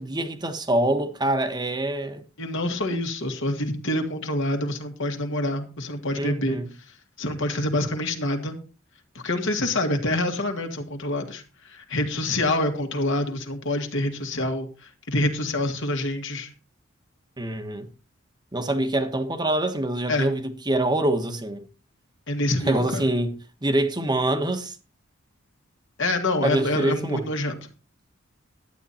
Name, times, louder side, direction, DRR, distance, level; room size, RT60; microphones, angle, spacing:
voice 1, 0.0-2.2 6.1-6.7 17.4-17.8 18.5-21.6 22.7-23.3 23.6-24.7 26.4-27.2, right 1 dB, 20° right, 1.2 m, -25 dB
voice 2, 2.4-6.6 7.2-8.6 9.2-14.7 15.1-16.5 20.1-20.3 22.3-23.1 26.0-27.7, left 1 dB, 65° left, 2.0 m, -26 dB
11.5 x 9.3 x 4.3 m
head